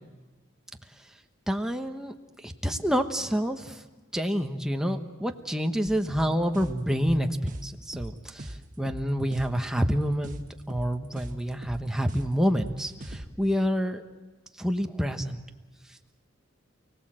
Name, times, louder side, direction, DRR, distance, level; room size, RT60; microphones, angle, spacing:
voice 1, 1.5-2.1 2.4-3.8 4.1-10.4 10.7-14.0 14.6-15.4, equal, 5° right, 4 dB, 1.1 m, -28 dB
sound 1, 5.9-13.2, right 1 dB, 40° right, 1.6 m, -40 dB
29.0 x 18.5 x 7.6 m, 1.2 s
head